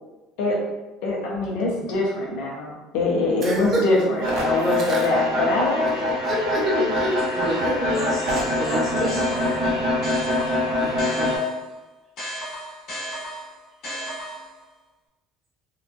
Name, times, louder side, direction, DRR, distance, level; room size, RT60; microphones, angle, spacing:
voice 1, 1.0-6.2, left 2 dB, 70° left, -2 dB, 0.6 m, -24 dB
voice 2, 3.4-3.8 4.9-5.0 6.3-8.0 8.6-9.1 10.8-11.4, equal, 30° right, -3 dB, 0.5 m, -27 dB
sound 1, 4.2-11.4, left 1 dB, 80° right, 0.8 m, -24 dB
sound 2, 7.2-7.9 8.4-11.7 12.2-14.6, equal, 45° left, 1.3 m, -36 dB
voice 3, 7.9-9.9, equal, 20° left, -8 dB, 1.0 m, -34 dB
2.9 x 2.2 x 2.5 m, 1.1 s
cardioid pair, 170°, 0 cm